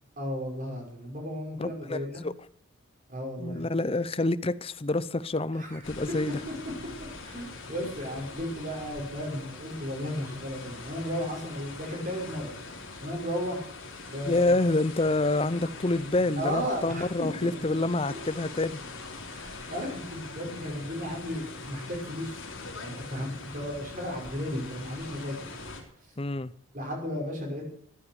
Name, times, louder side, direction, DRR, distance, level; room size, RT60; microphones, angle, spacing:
voice 1, 0.2-2.2 3.1-3.7 5.6-5.8 6.3-6.4 7.2-12.6 13.0-13.7 14.1-14.4 16.4-17.8 18.1-18.2 19.3-22.4 22.8-25.3 26.7-27.7, equal, 40° right, 6.2 m, -34 dB
voice 2, 1.6-2.3 3.4-6.4 14.3-18.8 26.2-26.5, left 2 dB, 25° left, 0.6 m, -27 dB
sound 1, 5.8-25.8, left 3 dB, 65° left, 3.9 m, -43 dB
15.0 x 10.0 x 8.2 m
head